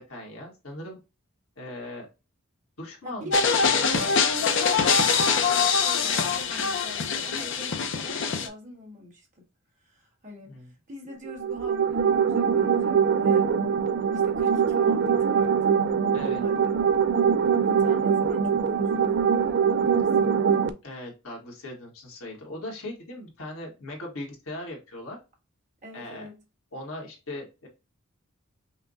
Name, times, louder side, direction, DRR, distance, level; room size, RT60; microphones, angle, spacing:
voice 1, 0.1-1.0 1.6-2.1 2.8-3.8 10.5-10.7 16.1-16.4 20.8-25.2 25.9-26.3 26.7-27.7, left 1 dB, 80° left, 1.5 m, -39 dB
voice 2, 3.0-5.2 5.4-9.3 9.8-13.5 14.2-15.8 16.3-16.8 17.6-20.5 25.8-26.4, left 1 dB, 35° right, 1.6 m, -43 dB
sound 1, 3.3-8.5, left 5 dB, 60° left, 0.6 m, -23 dB
sound 2, 11.3-20.7, right 7 dB, 55° right, 0.4 m, -23 dB
5.6 x 2.2 x 2.6 m
head